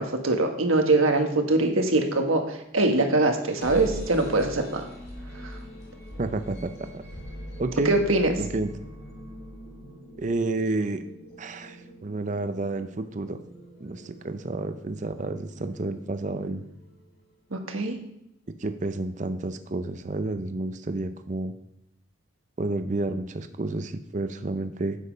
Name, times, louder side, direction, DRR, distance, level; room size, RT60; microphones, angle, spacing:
voice 1, 0.0-4.9 5.4-5.6 7.8-8.3 17.5-18.0, right 2 dB, 85° right, 4 dB, 1.4 m, -23 dB
sound 1, 3.4-17.2, equal, 50° left, 2.1 m, -43 dB
voice 2, 6.2-7.0 7.6-7.9 8.4-8.7 10.2-11.0 11.4-13.4 13.8-16.6 18.6-21.5 22.6-25.0, right 2 dB, 35° right, 9 dB, 0.5 m, -30 dB
8.2 x 7.4 x 5.1 m, 0.77 s
head